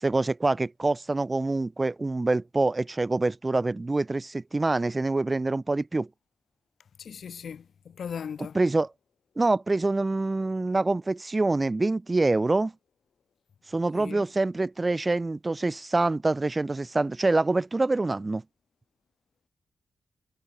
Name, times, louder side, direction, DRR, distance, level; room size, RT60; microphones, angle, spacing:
voice 1, 0.0-6.1 8.5-8.9 9.4-12.7 13.7-18.4, right 2 dB, 20° right, 0.4 m, -25 dB
voice 2, 7.0-8.6 13.9-14.2, left 7 dB, 65° left, 3.1 m, -38 dB
wide cardioid pair, 155°, 0 cm